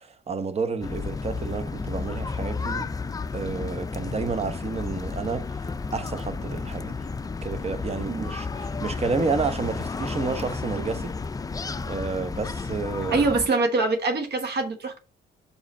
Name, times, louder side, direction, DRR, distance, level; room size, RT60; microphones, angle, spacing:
voice 1, 0.0-2.9 3.3-5.7 5.9-6.9 7.4-11.2 11.9-13.3, right 4 dB, 30° right, 0.9 m, -30 dB
sound 1, 0.8-13.5, left 4 dB, 20° left, 0.4 m, -32 dB
voice 2, 13.1-15.0, right 3 dB, 55° right, 1.2 m, -24 dB
4.9 x 4.9 x 4.2 m
cardioid pair, 90°, 20 cm